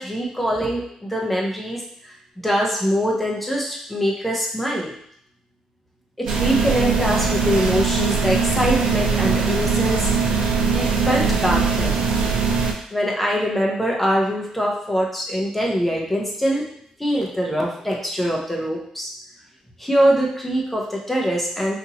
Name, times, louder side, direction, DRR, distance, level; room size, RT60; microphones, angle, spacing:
voice 1, 0.0-2.1 2.4-4.9 6.2-10.1 10.6-12.0 12.9-16.6 17.0-19.1 19.8-21.8, equal, 5° left, -2 dB, 0.8 m, -23 dB
sound 1, 6.3-12.7, right 5 dB, 75° right, 0.6 m, -21 dB
4.0 x 2.6 x 2.8 m, 0.67 s
cardioid pair, 125°, 2 cm